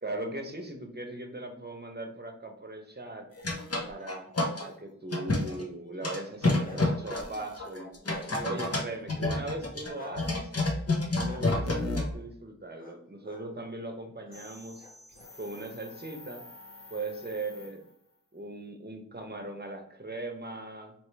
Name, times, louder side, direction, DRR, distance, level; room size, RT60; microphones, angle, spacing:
voice 1, 0.0-3.3 3.9-7.9 8.4-10.5 11.2-14.8 15.4-16.4 16.9-17.8 18.3-20.9, right 2 dB, 30° right, 3 dB, 0.9 m, -39 dB
sound 1, 3.4-4.6 5.1-5.6 6.0-12.1, left 2 dB, 50° left, 0.8 m, -29 dB
Bark, 6.3-7.0 7.6-8.6 9.9-10.1 11.2-11.4 12.8-13.0 13.2-13.4 14.2-14.4 14.8-15.6, left 1 dB, 25° left, 1.1 m, -48 dB
sound 2, 14.3-18.2, left 3 dB, 85° left, 1.5 m, -50 dB
4.4 x 3.1 x 3.2 m, 0.69 s
wide cardioid pair, 40°, 32 cm